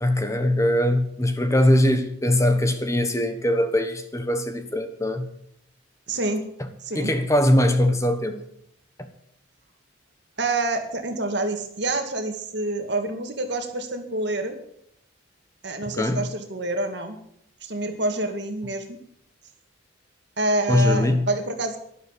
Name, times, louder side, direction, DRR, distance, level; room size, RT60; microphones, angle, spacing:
voice 1, 0.0-5.3 6.9-8.4 9.0-9.1 15.8-16.3 20.7-21.3, left 1 dB, 15° left, 1.1 m, -21 dB
voice 2, 6.1-6.4 6.8-7.1 10.4-14.5 15.6-17.2 17.6-19.0 20.4-21.8, right 2 dB, 55° right, 2.3 m, -27 dB
12.0 x 12.0 x 8.3 m
head